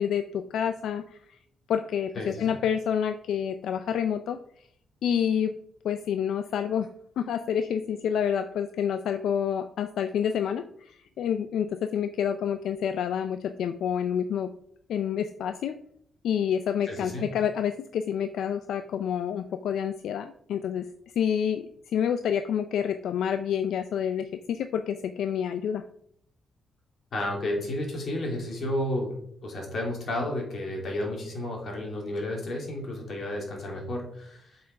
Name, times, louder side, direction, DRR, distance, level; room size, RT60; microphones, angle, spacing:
voice 1, 0.0-1.4 1.7-4.7 5.0-5.5 5.8-6.9 7.2-14.5 14.9-15.8 16.2-25.8, left 8 dB, 80° left, 10 dB, 0.5 m, -28 dB
voice 2, 2.1-2.6 16.9-17.3 27.1-29.1 29.4-34.6, left 1 dB, 50° left, 0 dB, 2.9 m, -32 dB
7.8 x 5.6 x 5.2 m, 0.68 s
cardioid pair, 135°, 0 cm